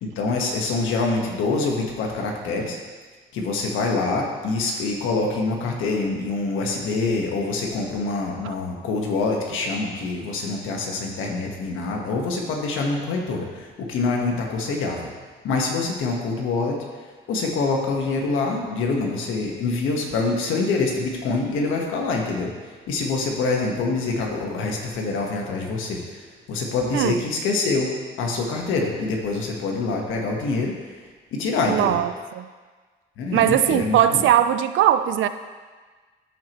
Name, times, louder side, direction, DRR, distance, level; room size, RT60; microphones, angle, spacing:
voice 1, 0.0-2.8 3.3-15.1 15.4-16.8 17.3-22.5 22.9-26.2 26.5-27.9 28.2-30.9 31.3-32.0 33.2-34.2, left 3 dB, 85° left, 0 dB, 1.3 m, -25 dB
voice 2, 31.7-32.5 33.3-35.3, right 11 dB, 75° right, 11 dB, 0.5 m, -20 dB
13.0 x 4.6 x 3.0 m, 1.4 s
cardioid pair, 90°, 20 cm